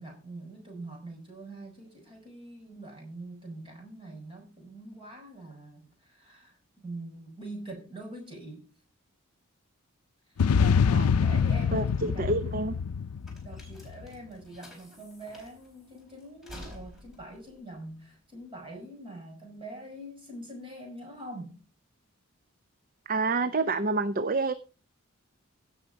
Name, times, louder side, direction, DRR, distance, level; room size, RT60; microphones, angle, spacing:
voice 1, 0.0-8.7 10.3-12.7 13.4-21.6, right 1 dB, 25° right, 5.4 m, -44 dB
sound 1, 10.4-13.9, left 6 dB, 85° left, 0.5 m, -25 dB
voice 2, 11.7-12.7 23.1-24.5, right 3 dB, 40° right, 0.6 m, -28 dB
sound 2, 12.5-18.8, left 1 dB, ahead, 4.3 m, -51 dB
16.5 x 6.4 x 5.1 m
head